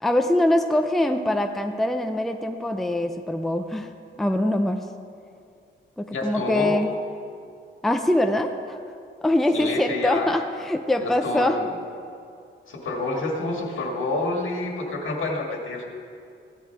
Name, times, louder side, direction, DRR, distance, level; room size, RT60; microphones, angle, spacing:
voice 1, 0.0-3.9 4.2-4.8 6.0-6.9 7.8-8.8 9.2-11.6, left 1 dB, ahead, 5 dB, 0.5 m, -23 dB
voice 2, 6.1-6.8 9.5-10.4 11.0-11.7 12.7-15.8, left 2 dB, 75° left, 1 dB, 2.0 m, -28 dB
15.5 x 11.0 x 4.6 m, 2.4 s
wide cardioid pair, 160°, 21 cm